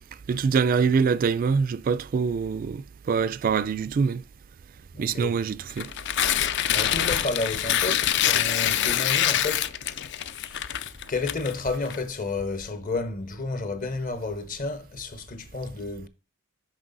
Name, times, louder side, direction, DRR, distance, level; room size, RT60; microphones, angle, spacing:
voice 1, 0.3-4.2 5.0-5.9, right 5 dB, 45° right, 0.3 m, -24 dB
voice 2, 4.9-5.4 6.7-9.7 10.5-16.1, left 3 dB, 40° left, 0.9 m, -31 dB
Tearing, 5.7-12.0, left 10 dB, 55° left, 0.4 m, -25 dB
6.0 x 5.4 x 4.0 m
head